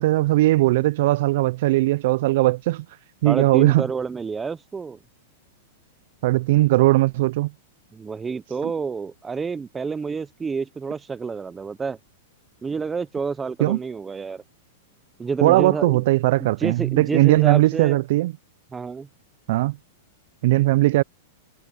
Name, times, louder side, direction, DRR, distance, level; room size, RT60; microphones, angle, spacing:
voice 1, 0.0-2.8 3.2-3.9 6.2-7.5 8.6-8.7 13.6-13.8 15.4-18.3 19.5-19.8 20.4-21.0, right 18 dB, 60° right, 0.3 m, -19 dB
voice 2, 3.2-5.0 7.9-12.0 12.6-14.4 15.2-16.0 16.4-18.0 18.7-19.1, right 5 dB, 15° right, 0.6 m, -29 dB
supercardioid pair, 140°, 0 cm